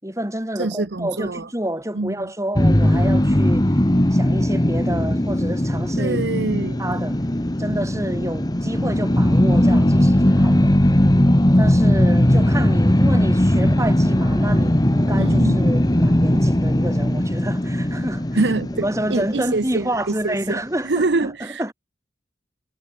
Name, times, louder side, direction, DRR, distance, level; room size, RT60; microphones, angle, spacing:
voice 1, 0.0-3.7 4.1-6.2 6.6-7.2 7.6-10.7 11.6-18.4 18.8-21.7, right 1 dB, 15° right, 6.5 m, -28 dB
voice 2, 0.6-1.5 1.9-2.3 6.0-6.8 15.2-15.7 18.3-21.7, right 3 dB, 80° right, 0.9 m, -25 dB
sound 1, 2.5-19.7, left 1 dB, 20° left, 1.3 m, -18 dB
head